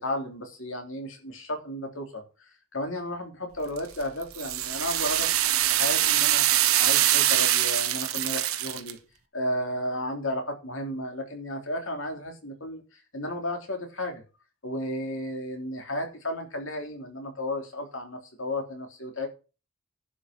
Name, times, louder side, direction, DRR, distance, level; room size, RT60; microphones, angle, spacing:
voice 1, 0.0-5.3 5.7-9.0 9.3-14.2 14.6-19.3, left 1 dB, 65° left, 4 dB, 3.4 m, -33 dB
sound 1, 3.8-8.9, right 13 dB, 80° right, 1.2 m, -24 dB
11.0 x 6.3 x 5.9 m, 0.32 s
head